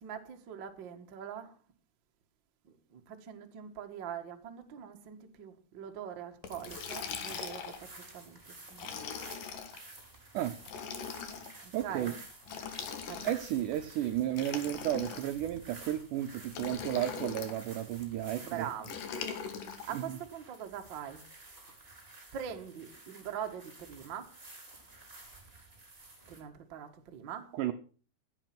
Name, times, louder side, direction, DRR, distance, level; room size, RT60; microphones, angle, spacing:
voice 1, 0.0-1.5 2.9-7.6 8.1-8.4 8.7-9.2 11.6-12.2 13.1-13.2 18.4-18.9 19.8-21.2 22.3-24.3 26.3-27.5, right 8 dB, 55° right, 4 dB, 1.3 m, -42 dB
Liquid, 6.4-7.9 8.7-9.8 10.6-11.5 12.4-13.6 14.3-15.5 16.5-17.6 18.8-19.9, left 7 dB, 60° left, 3.0 m, -40 dB
sound 1, 6.7-26.4, right 2 dB, 15° right, 4.3 m, -52 dB
voice 2, 11.7-12.2 13.2-18.7 19.9-20.2 27.5-27.7, right 12 dB, 85° right, 9 dB, 1.8 m, -33 dB
15.5 x 8.9 x 6.0 m, 0.41 s
omnidirectional pair, 4.6 m